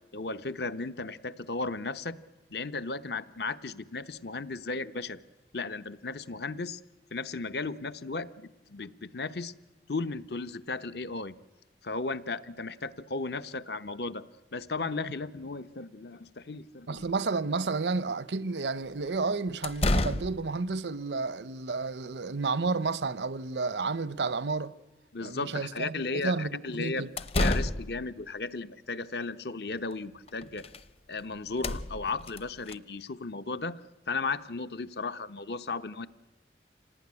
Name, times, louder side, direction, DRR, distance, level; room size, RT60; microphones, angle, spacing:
voice 1, 0.1-2.2 2.5-5.2 5.5-6.8 7.1-9.5 9.9-11.4 11.8-14.2 14.5-17.1 25.1-30.7 31.1-33.8 34.1-36.1, left 3 dB, 70° left, 0.9 m, -35 dB
voice 2, 16.9-24.7 25.2-26.0 26.2-27.1, right 4 dB, 85° right, 0.8 m, -31 dB
sound 1, 17.0-17.1 19.0-19.1 19.6-20.5 26.9-28.1 29.9-30.0 30.3-30.9 31.1-31.2 31.5-32.8, left 1 dB, 35° left, 0.8 m, -30 dB
26.5 x 18.0 x 9.8 m
head